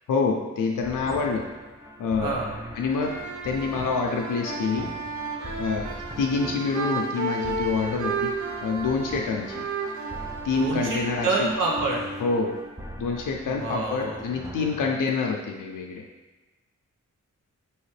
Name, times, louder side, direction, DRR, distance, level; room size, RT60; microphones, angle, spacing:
voice 1, 0.1-1.5 2.0-2.4 2.8-3.1 3.4-4.9 5.6-5.9 6.2-8.3 8.6-9.7 10.4-11.5 12.2-12.6 13.0-16.0, left 4 dB, 85° left, 0 dB, 0.5 m, -26 dB
sound 1, 0.8-15.0, equal, 10° right, 0.4 m, -42 dB
voice 2, 2.2-2.7 10.6-12.0 13.5-14.2, right 3 dB, 85° right, -3 dB, 1.0 m, -27 dB
sound 2, 2.9-12.7, right 4 dB, 70° right, 0.6 m, -33 dB
4.7 x 2.9 x 3.2 m, 1.2 s
cardioid pair, 50°, 31 cm